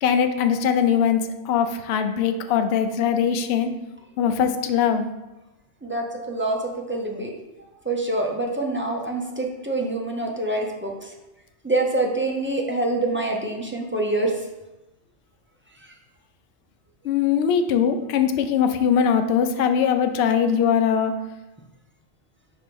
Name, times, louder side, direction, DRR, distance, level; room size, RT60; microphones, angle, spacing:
voice 1, 0.0-3.7 4.2-5.1 17.0-21.1, left 7 dB, 65° left, 7 dB, 0.7 m, -21 dB
voice 2, 5.8-7.3 7.8-11.1 11.6-14.3 15.8-15.9, right 2 dB, 15° right, 0 dB, 0.4 m, -26 dB
5.9 x 3.1 x 5.2 m, 1.0 s
omnidirectional pair, 1.3 m